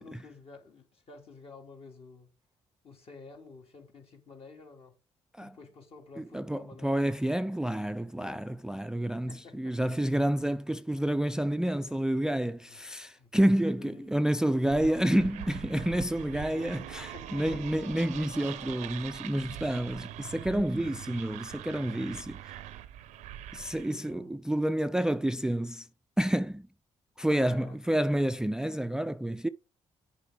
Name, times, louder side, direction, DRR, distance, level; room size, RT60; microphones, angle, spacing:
voice 1, 0.0-2.3 2.8-5.0 5.4-7.1 8.2-8.5 9.3-9.9 11.5-11.6 12.3-12.8 13.1-15.5 17.0-17.6 23.9-24.6 27.2-28.1, left 4 dB, 55° left, 2.3 m, -51 dB
voice 2, 6.2-22.4 23.5-25.9 26.2-26.7 27.2-29.5, right 1 dB, 5° right, 0.3 m, -29 dB
sound 1, 14.7-24.1, right 12 dB, 85° right, 0.6 m, -42 dB
6.6 x 4.7 x 4.8 m
supercardioid pair, 65°, 12 cm